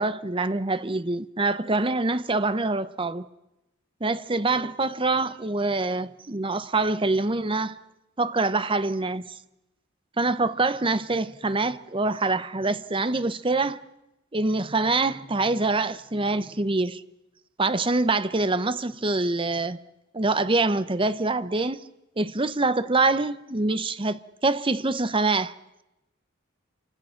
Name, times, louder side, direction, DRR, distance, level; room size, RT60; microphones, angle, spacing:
voice 1, 0.0-3.3 4.0-7.8 8.2-9.3 10.2-13.9 14.3-17.0 17.6-19.8 20.1-21.8 22.2-25.5, right 3 dB, 25° right, 0.9 m, -25 dB
28.5 x 25.5 x 5.8 m
head